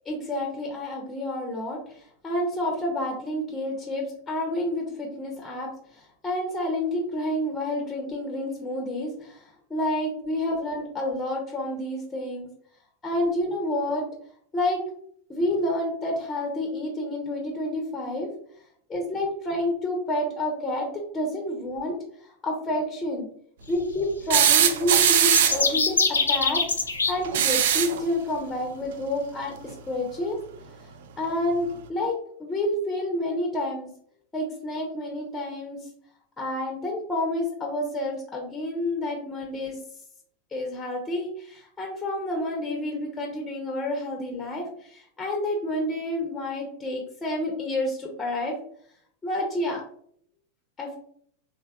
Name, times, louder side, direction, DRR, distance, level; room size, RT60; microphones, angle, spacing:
voice 1, 0.1-12.5 13.0-14.0 14.5-14.8 15.3-18.3 18.9-20.9 21.1-22.0 22.2-23.3 23.7-26.6 27.1-29.5 29.9-30.4 31.2-32.1 32.4-33.9 34.3-35.9 36.4-39.8 40.5-48.6 49.2-49.8 50.8-51.0, left 1 dB, 15° left, 1 dB, 0.7 m, -29 dB
sound 1, 24.3-25.7 27.2-28.0 29.7-29.8 31.2-31.3, right 9 dB, 55° right, 0.3 m, -20 dB
sound 2, 25.0-27.1, left 4 dB, 75° left, 0.4 m, -23 dB
3.3 x 3.2 x 2.3 m, 0.63 s
figure-of-eight pair, 90°, 0 cm